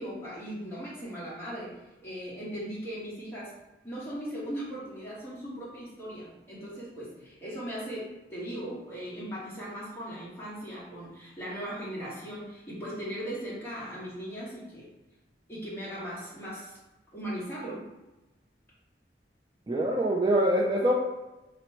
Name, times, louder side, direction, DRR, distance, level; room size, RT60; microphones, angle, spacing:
voice 1, 0.0-1.7 2.0-3.5 3.8-14.9 15.5-16.8 17.1-17.8, equal, 15° left, -8 dB, 1.4 m, -38 dB
voice 2, 19.7-20.9, right 1 dB, 25° right, -2 dB, 0.3 m, -24 dB
3.0 x 3.0 x 4.4 m, 1.1 s
head